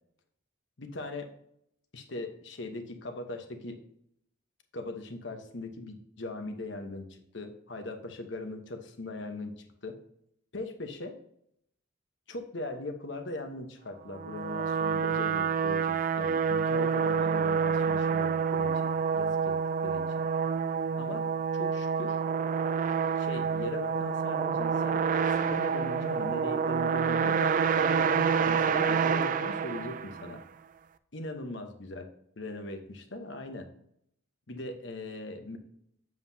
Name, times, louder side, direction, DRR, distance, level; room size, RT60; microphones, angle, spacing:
voice 1, 0.8-1.3 1.9-3.8 4.7-10.0 10.5-11.2 12.3-20.0 21.0-21.3 21.5-22.2 23.2-25.0 25.5-30.4 31.1-32.1 32.4-33.7 34.5-35.6, left 2 dB, 65° left, 6 dB, 1.0 m, -40 dB
sound 1, 14.1-30.4, right 6 dB, 40° right, 0.3 m, -28 dB
7.7 x 7.4 x 2.7 m, 0.73 s
head